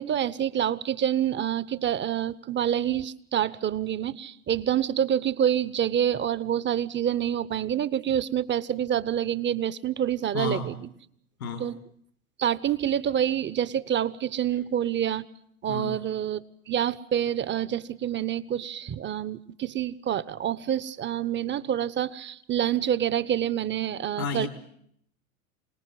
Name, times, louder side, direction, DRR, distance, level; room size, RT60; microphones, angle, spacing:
voice 1, 0.0-10.9 11.6-11.7 12.4-15.2 15.6-16.4 16.7-24.5, right 10 dB, 25° right, 17 dB, 1.1 m, -27 dB
voice 2, 10.3-10.7 11.4-11.7 15.7-16.0 24.2-24.5, left 4 dB, 80° left, 6 dB, 3.4 m, -31 dB
26.5 x 19.0 x 7.8 m, 0.69 s
hypercardioid pair, 85°, 42 cm